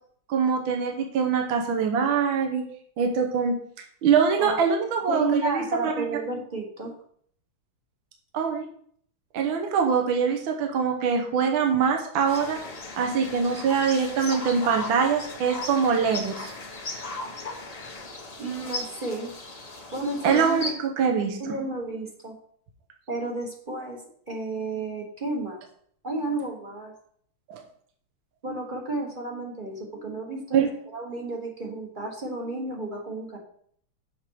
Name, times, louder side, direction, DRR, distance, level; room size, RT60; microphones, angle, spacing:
voice 1, 0.3-2.6 3.0-3.6 4.0-5.9 8.3-8.7 9.3-12.6 13.0-16.5 20.2-21.4 27.5-27.6 30.5-30.7, right 6 dB, 70° right, 3 dB, 1.7 m, -23 dB
voice 2, 5.1-6.9 18.4-19.3 19.9-20.4 21.4-22.4 23.1-24.0 24.3-25.6 26.0-26.9 28.4-30.7 30.9-33.4, right 2 dB, 30° right, 0 dB, 1.0 m, -32 dB
sound 1, 12.3-20.7, left 2 dB, 70° left, 0.3 m, -37 dB
7.1 x 5.0 x 4.6 m, 0.63 s
omnidirectional pair, 2.3 m